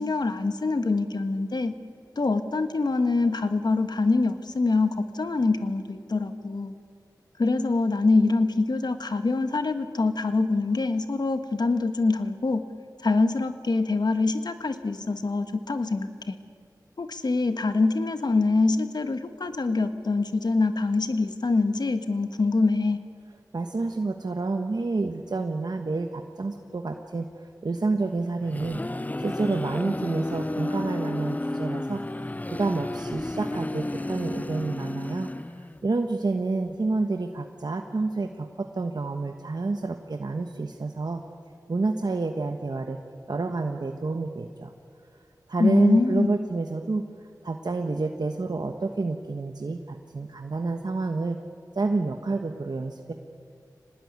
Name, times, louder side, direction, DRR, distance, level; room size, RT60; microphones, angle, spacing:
voice 1, 0.0-1.7 2.2-6.7 7.4-12.6 13.0-16.4 17.0-23.0 45.6-46.3, left 3 dB, 75° left, 9 dB, 1.5 m, -24 dB
voice 2, 23.5-27.3 27.6-35.3 35.6-41.2 41.7-43.0 43.3-44.7 45.5-47.0 47.4-51.4 51.7-53.1, right 3 dB, 70° right, 4 dB, 1.3 m, -29 dB
sound 1, 28.2-35.9, left 1 dB, 20° left, 0.6 m, -32 dB
25.0 x 19.0 x 9.7 m, 2.2 s
wide cardioid pair, 45°, 7 cm